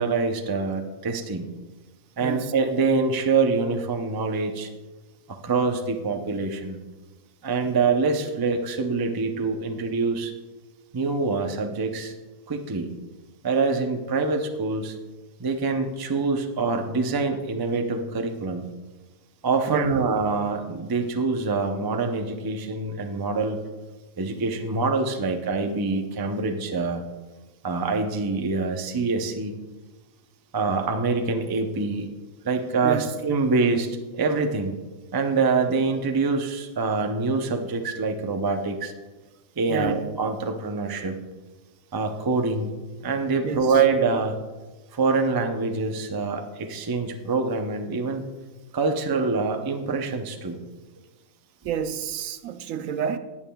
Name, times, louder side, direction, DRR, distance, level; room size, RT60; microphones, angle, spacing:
voice 1, 0.0-1.5 2.2-4.7 5.4-6.8 7.4-10.3 10.9-12.1 12.5-12.9 13.4-15.0 15.4-18.7 19.4-23.6 24.2-27.0 27.6-29.6 30.5-32.1 32.4-34.8 35.1-38.9 39.6-41.1 41.9-42.8 43.0-44.4 44.9-48.2 48.7-50.6, right 4 dB, 35° right, 0.3 m, -25 dB
voice 2, 2.2-2.5 7.6-7.7 19.7-20.0 32.8-33.1 39.7-40.0 43.4-43.7 51.6-53.2, right 8 dB, 70° right, 0.9 m, -29 dB
19.0 x 7.2 x 2.3 m
omnidirectional pair, 1.5 m